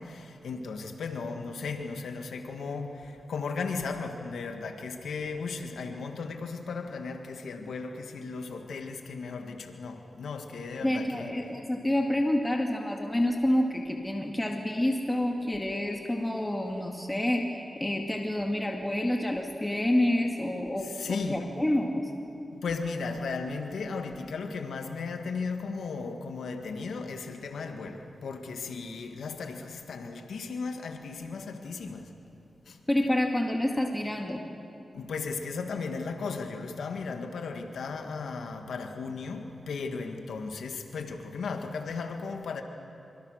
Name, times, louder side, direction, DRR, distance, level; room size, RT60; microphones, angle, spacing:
voice 1, 0.0-11.3 20.8-21.5 22.5-32.1 32.7-32.8 34.9-42.6, left 4 dB, 90° left, 5 dB, 1.9 m, -36 dB
voice 2, 10.8-22.0 32.9-34.4, left 1 dB, 15° left, 2 dB, 2.3 m, -28 dB
26.5 x 25.5 x 6.5 m, 2.7 s
cardioid pair, 50°, 0 cm